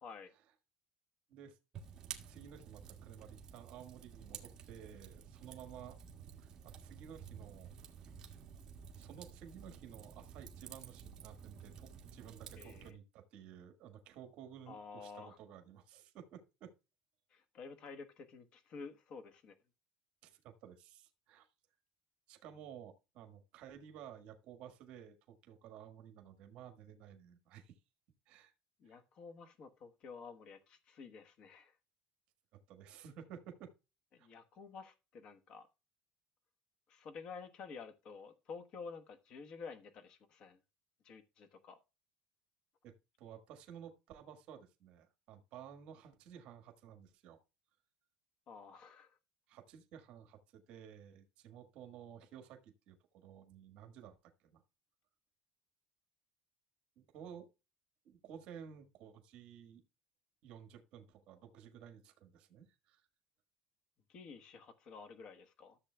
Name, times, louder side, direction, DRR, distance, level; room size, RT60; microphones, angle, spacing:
Fire, 1.7-12.9, right 7 dB, 35° right, 1.6 m, -52 dB
voice 1, 2.3-6.0 6.4-7.7 8.9-16.7 20.2-21.5 22.3-27.8 28.3-28.5 28.8-29.0 32.5-33.7 34.2-34.3 42.8-47.4 49.5-54.6 57.0-57.5 58.0-59.8 60.4-63.0, right 8 dB, 55° right, 1.5 m, -54 dB
voice 2, 12.6-12.9 14.7-15.4 17.3-19.5 28.8-31.8 34.1-35.7 36.9-40.6 41.0-41.8 48.5-49.2 64.1-65.8, left 5 dB, 45° left, 1.2 m, -51 dB
13.5 x 7.4 x 2.2 m
cardioid pair, 150°, 2 cm